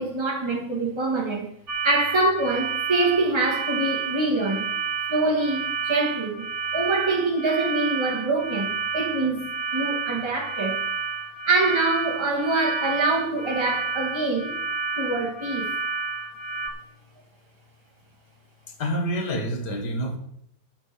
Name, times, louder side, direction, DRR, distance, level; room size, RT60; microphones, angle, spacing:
voice 1, 0.0-1.5 1.8-4.7 5.1-6.5 6.7-10.8 11.5-14.5 15.0-15.7, right 2 dB, 15° right, 2.2 m, -25 dB
sound 1, 1.7-16.7, right 5 dB, 80° right, 3.7 m, -30 dB
voice 2, 18.8-20.2, equal, 55° left, 2.2 m, -27 dB
11.0 x 6.7 x 7.0 m
omnidirectional pair, 2.1 m